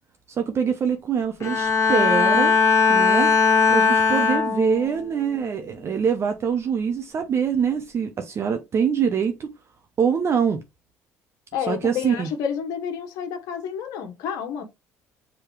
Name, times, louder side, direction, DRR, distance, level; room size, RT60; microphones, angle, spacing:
voice 1, 0.4-2.6 2.9-3.4 3.7-9.5 10.0-10.6 11.7-12.3, right 7 dB, 45° right, 0.7 m, -24 dB
Bowed string instrument, 1.4-5.0 5.4-5.8, left 5 dB, 50° left, 1.5 m, -19 dB
voice 2, 11.5-14.6, left 8 dB, 75° left, 0.9 m, -29 dB
4.9 x 3.1 x 3.1 m
supercardioid pair, 70°, 6 cm